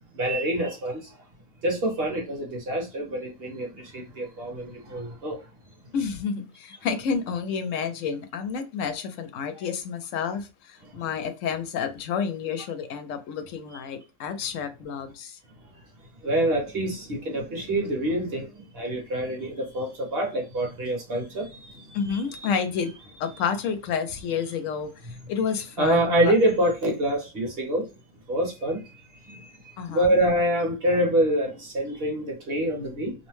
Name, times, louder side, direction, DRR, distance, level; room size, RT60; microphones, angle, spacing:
voice 1, 0.1-1.0 1.6-5.4 16.2-18.5 18.7-22.4 25.8-27.8 28.3-28.8 29.3-29.5 29.9-33.3, right 1 dB, 55° right, 1.1 m, -26 dB
voice 2, 5.9-15.4 21.9-22.9 23.2-26.3 29.8-30.2, left 6 dB, 85° left, 0.9 m, -30 dB
2.7 x 2.1 x 3.1 m
omnidirectional pair, 1.3 m